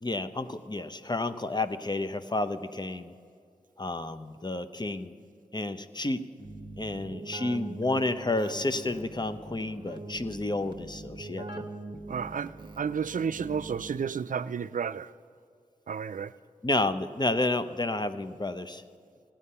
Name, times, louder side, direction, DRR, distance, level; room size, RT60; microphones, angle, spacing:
voice 1, 0.0-3.1 3.8-5.1 5.5-6.2 6.8-11.6 16.6-18.8, left 2 dB, 30° left, 0.7 m, -30 dB
Keyboard (musical), 6.4-14.3, right 2 dB, 30° right, 0.9 m, -43 dB
voice 2, 12.1-15.1 15.9-16.3, right 7 dB, 65° right, 0.4 m, -32 dB
16.0 x 8.8 x 5.5 m
cardioid pair, 40°, 15 cm